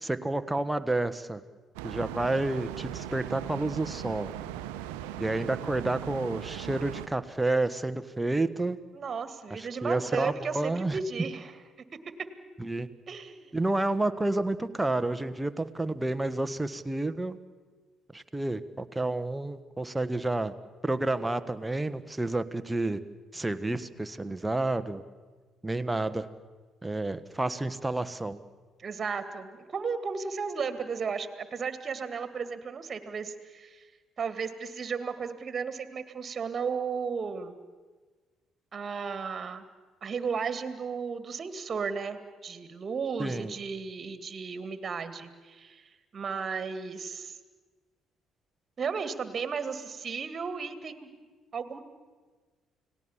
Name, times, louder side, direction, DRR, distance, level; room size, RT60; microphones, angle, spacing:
voice 1, 0.0-1.4 1.8-4.3 5.2-8.8 9.5-11.0 12.6-12.9 13.5-17.4 18.1-20.5 20.8-23.0 23.3-25.0 25.6-26.3 26.8-28.4 43.2-43.5, right 2 dB, 15° right, 10 dB, 1.5 m, -30 dB
sound 1, 1.8-7.1, right 12 dB, 75° right, 0.9 m, -39 dB
voice 2, 8.9-11.5 13.1-13.6 28.8-33.8 34.2-37.6 38.7-39.7 40.0-47.4 48.8-51.1 51.5-51.8, right 5 dB, 40° right, 11 dB, 2.3 m, -34 dB
30.0 x 18.5 x 7.4 m, 1.4 s
hypercardioid pair, 50°, 0 cm